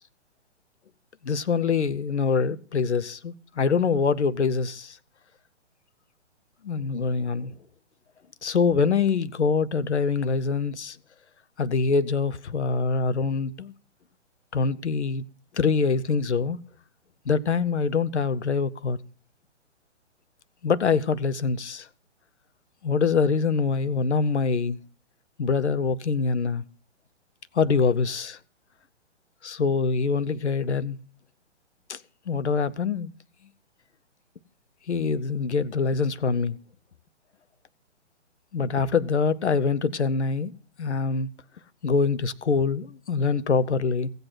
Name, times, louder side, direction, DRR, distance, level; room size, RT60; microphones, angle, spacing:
voice 1, 1.2-5.0 6.6-7.5 8.4-11.0 11.6-13.7 14.5-15.2 15.5-16.6 17.3-19.0 20.6-21.9 22.8-24.8 25.4-26.6 27.5-28.4 29.4-31.0 31.9-32.0 32.3-33.1 34.9-36.6 38.5-40.5 40.8-41.3 41.8-44.1, left 5 dB, 70° left, 0.8 m, -24 dB
15.5 x 8.0 x 6.1 m
figure-of-eight pair, 130°, 36 cm